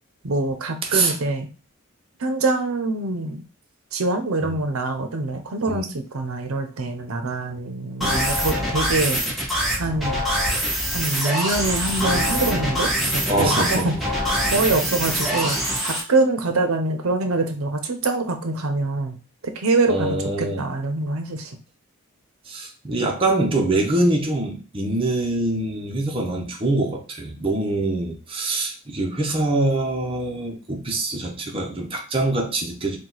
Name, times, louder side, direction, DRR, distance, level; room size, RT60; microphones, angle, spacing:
voice 1, 0.2-1.5 2.2-3.4 3.9-9.2 9.8-10.2 10.9-13.9 14.5-15.6 15.8-19.2 19.4-21.6, right 2 dB, 85° right, 6 dB, 0.7 m, -24 dB
voice 2, 0.8-1.2 4.4-4.6 5.7-5.9 13.3-13.9 19.9-20.7 22.5-33.0, right 2 dB, 25° right, 0 dB, 0.8 m, -24 dB
sound 1, 8.0-16.0, equal, ahead, 1.2 m, -24 dB
4.6 x 2.3 x 3.9 m, 0.35 s
head